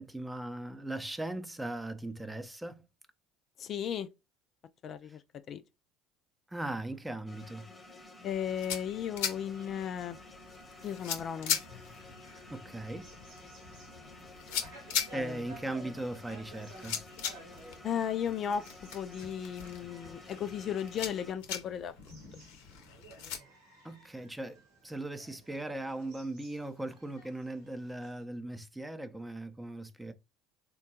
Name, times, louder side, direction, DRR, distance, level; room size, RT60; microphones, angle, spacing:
voice 1, 0.0-2.8 6.5-7.7 12.5-13.1 15.1-17.0 23.8-30.1, right 1 dB, 10° right, 0.6 m, -39 dB
voice 2, 3.6-4.1 4.8-5.2 5.5-5.6 8.2-10.2 10.8-11.6 15.1-15.4 17.8-21.9, left 8 dB, 50° left, 0.3 m, -35 dB
sound 1, 7.3-21.3, left 2 dB, 15° left, 0.9 m, -52 dB
sound 2, 8.3-23.4, left 8 dB, 75° left, 0.7 m, -40 dB
sound 3, 9.2-28.2, right 2 dB, 80° right, 1.2 m, -56 dB
3.5 x 2.2 x 2.7 m
hypercardioid pair, 70°, 0 cm